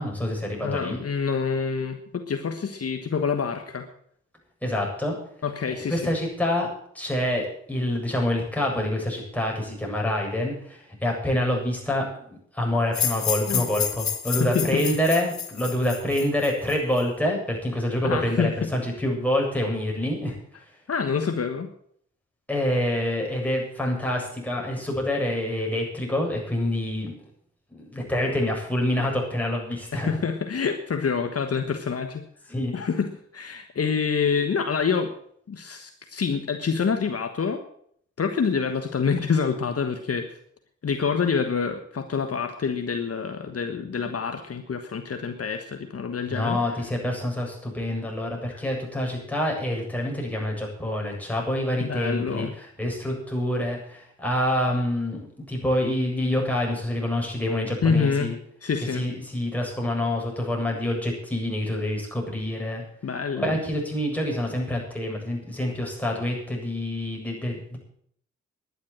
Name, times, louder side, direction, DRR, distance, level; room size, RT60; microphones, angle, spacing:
voice 1, 0.0-1.0 4.6-5.1 5.7-6.7 6.9-20.3 22.5-27.2 27.7-30.2 32.5-32.7 46.3-52.5 52.8-58.3 58.9-62.8 63.4-67.8, left 1 dB, 5° left, -1 dB, 7.8 m, -27 dB
voice 2, 0.6-3.9 5.4-6.1 13.5-13.6 14.4-15.0 18.0-18.7 20.9-21.7 29.9-32.2 32.7-35.1 35.5-37.6 38.2-40.4 40.8-46.8 48.5-48.6 51.8-52.5 57.8-59.0 63.0-63.6, left 5 dB, 50° left, 6 dB, 1.4 m, -27 dB
sound 1, 12.9-17.0, left 8 dB, 70° left, 1.7 m, -30 dB
11.0 x 10.5 x 8.8 m, 0.65 s
cardioid pair, 55°, 30 cm